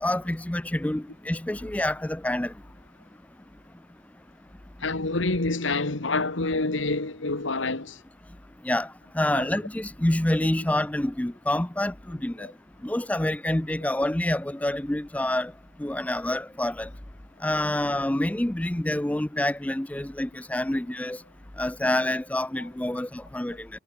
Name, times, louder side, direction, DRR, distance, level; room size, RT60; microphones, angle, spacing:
voice 1, 0.0-2.5 8.6-12.5 12.8-15.5 15.8-16.9 17.4-21.2 21.6-23.7, left 1 dB, 5° left, 0.4 m, -27 dB
voice 2, 4.8-8.0 9.4-9.5 12.4-12.5, left 3 dB, 80° left, 1.8 m, -27 dB
head